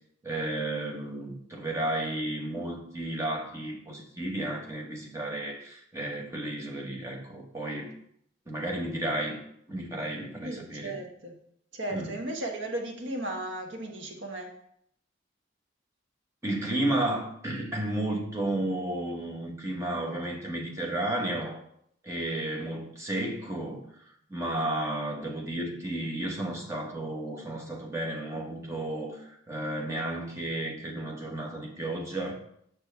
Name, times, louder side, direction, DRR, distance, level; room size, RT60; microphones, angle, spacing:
voice 1, 0.2-8.0 8.5-9.4 9.7-11.0 11.9-12.1 16.4-21.6 22.0-32.3, right 1 dB, 15° right, -1 dB, 1.1 m, -33 dB
voice 2, 10.4-11.4 11.7-14.5, right 1 dB, 70° right, 1 dB, 1.2 m, -35 dB
6.5 x 6.0 x 3.4 m, 0.70 s
head